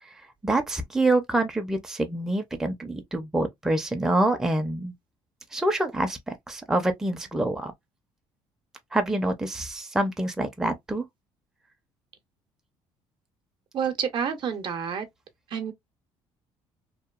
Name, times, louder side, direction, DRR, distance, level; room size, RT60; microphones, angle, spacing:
voice 1, 0.4-4.9 5.5-7.7 8.9-11.0, right 2 dB, 5° right, 0.5 m, -26 dB
voice 2, 13.7-15.1 15.5-15.7, right 7 dB, 50° right, 0.6 m, -29 dB
2.9 x 2.2 x 2.3 m
cardioid pair, 120°, 10 cm